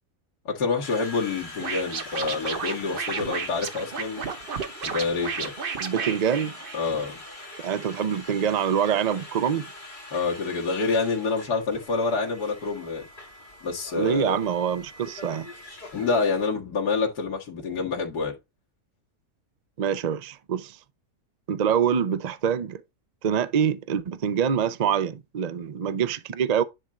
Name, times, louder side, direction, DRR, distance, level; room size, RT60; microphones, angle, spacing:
voice 1, 0.5-4.3 4.8-5.5 6.7-7.2 10.1-13.0 13.6-14.4 15.9-18.3, left 4 dB, 90° left, 2.3 m, -27 dB
Conversation, 0.8-16.5, left 1 dB, 30° left, 2.5 m, -43 dB
Scratching (performance technique), 1.6-7.1, right 5 dB, 45° right, 0.9 m, -32 dB
voice 2, 5.8-6.5 7.6-9.7 13.9-15.5 19.8-20.8 21.5-22.8 23.2-26.6, right 8 dB, 60° right, 0.4 m, -25 dB
10.5 x 3.8 x 4.3 m
omnidirectional pair, 1.7 m